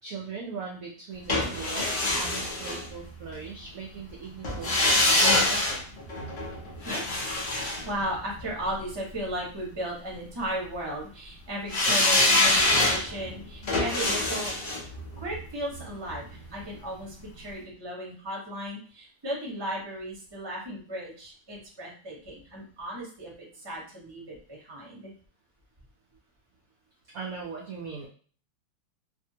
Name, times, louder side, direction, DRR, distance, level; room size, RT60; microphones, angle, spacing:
voice 1, 0.0-5.8 27.1-28.1, right 5 dB, 70° right, -2 dB, 0.8 m, -40 dB
sound 1, 1.3-3.4 4.4-8.7 11.7-16.7 17.0-17.1, left 2 dB, 85° left, 0.4 m, -26 dB
voice 2, 7.5-14.5 15.2-25.1, right 1 dB, 20° right, -4 dB, 0.7 m, -36 dB
2.7 x 2.7 x 2.7 m, 0.42 s
omnidirectional pair, 2.1 m